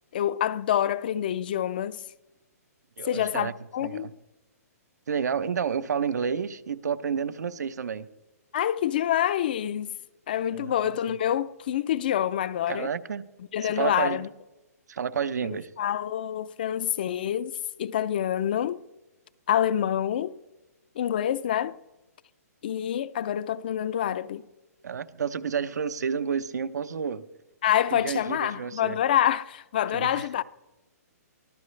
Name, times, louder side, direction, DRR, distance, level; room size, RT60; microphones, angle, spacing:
voice 1, 0.1-2.0 3.0-4.1 8.5-10.0 10.3-12.9 13.5-14.3 15.8-17.5 17.8-18.8 19.5-20.4 21.0-21.8 22.6-24.4 27.6-30.4, left 10 dB, 35° left, 0.4 m, -27 dB
voice 2, 3.0-3.5 3.8-4.1 5.1-8.1 10.5-11.2 12.7-13.3 13.6-14.3 14.9-15.7 24.8-27.2 27.9-29.0 29.9-30.3, right 7 dB, 90° right, 0.9 m, -30 dB
23.5 x 14.5 x 3.3 m
hypercardioid pair, 170°, 9 cm